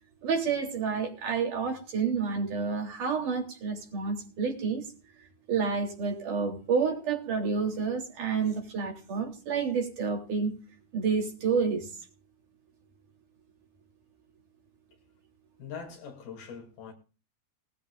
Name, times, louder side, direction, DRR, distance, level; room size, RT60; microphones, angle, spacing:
voice 1, 0.2-4.9 5.5-10.6 10.9-11.9, right 5 dB, 55° right, 4.9 m, -29 dB
voice 2, 15.6-16.9, left 6 dB, 75° left, 4.9 m, -42 dB
20.0 x 14.0 x 2.5 m
omnidirectional pair, 4.3 m